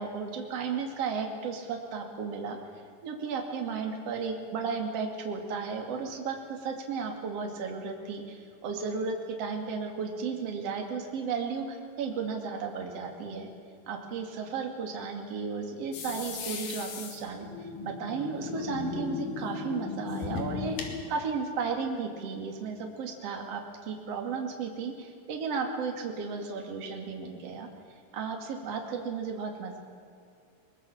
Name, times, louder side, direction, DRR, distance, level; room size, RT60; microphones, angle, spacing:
voice 1, 0.0-2.6 3.0-13.5 13.9-27.7 28.1-29.8, right 5 dB, 40° right, 2 dB, 2.9 m, -34 dB
sound 1, 15.9-21.0, left 5 dB, 55° left, 3.5 m, -37 dB
22.5 x 21.5 x 7.2 m, 2.3 s
omnidirectional pair, 5.1 m